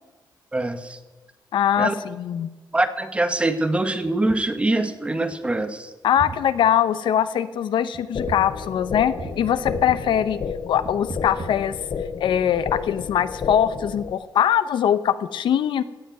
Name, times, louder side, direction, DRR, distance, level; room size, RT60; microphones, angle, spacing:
voice 1, 0.5-1.0 1.8-2.0 2.7-5.9, right 2 dB, 15° right, 9 dB, 1.1 m, -23 dB
voice 2, 1.5-2.5 6.0-10.4 10.7-11.8 12.2-15.8, left 9 dB, 80° left, 14 dB, 0.8 m, -22 dB
sound 1, 4.0-4.4 4.9-5.0 5.3-5.9 6.1-6.5 7.9-8.5 8.8-10.2 10.8-12.1 12.9-13.8, right 4 dB, 45° right, 1.6 m, -38 dB
sound 2, 8.1-14.1, left 6 dB, 45° left, 0.8 m, -32 dB
16.5 x 7.7 x 9.1 m, 1.2 s
wide cardioid pair, 145°, 8 cm